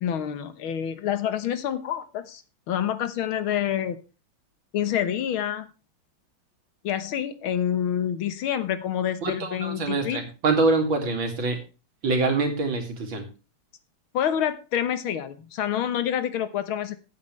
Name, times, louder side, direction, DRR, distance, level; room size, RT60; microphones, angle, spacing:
voice 1, 0.0-4.0 4.7-5.7 6.8-10.2 14.1-17.0, left 9 dB, 80° left, 12 dB, 2.0 m, -27 dB
voice 2, 9.2-11.6 12.0-13.3, right 3 dB, 70° right, 4 dB, 3.1 m, -25 dB
14.5 x 8.5 x 3.2 m, 0.31 s
omnidirectional pair, 2.3 m